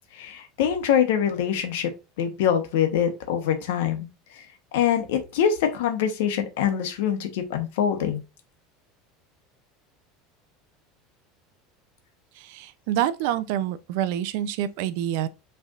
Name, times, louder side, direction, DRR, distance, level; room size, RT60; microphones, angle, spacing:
voice 1, 0.1-1.9 2.2-4.1 4.7-8.2, left 9 dB, 85° left, 1.1 m, -24 dB
voice 2, 12.4-15.3, right 11 dB, 70° right, 0.5 m, -27 dB
6.4 x 3.4 x 2.4 m
supercardioid pair, 145°, 0 cm